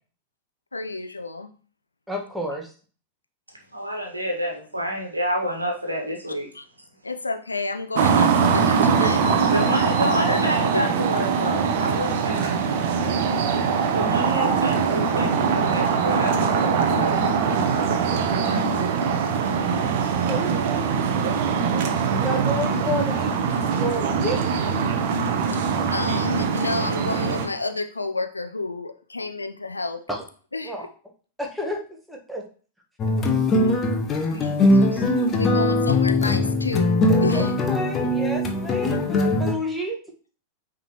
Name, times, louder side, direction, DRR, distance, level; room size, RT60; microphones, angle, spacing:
voice 1, 0.7-1.5 6.6-6.7 7.0-9.7 10.0-10.5 10.7-10.9 25.9-30.0 30.5-30.7 35.3-36.9 37.2-37.5, left 3 dB, 80° left, 8 dB, 0.6 m, -30 dB
voice 2, 2.1-2.7 20.3-20.6 22.2-23.3 23.6-24.5 30.1-30.2 30.6-30.9 31.4-32.4 37.3-40.0, left 1 dB, 5° right, 0 dB, 1.4 m, -30 dB
voice 3, 3.7-6.5 9.5-12.5 13.9-17.1 18.2-19.6 34.3-35.6, equal, 85° right, 1 dB, 1.6 m, -30 dB
sound 1, 7.9-27.5, right 6 dB, 50° right, 0.8 m, -22 dB
sound 2, 33.0-39.5, left 2 dB, 25° left, 0.9 m, -21 dB
9.0 x 3.8 x 3.0 m, 0.40 s
figure-of-eight pair, 90°, 0 cm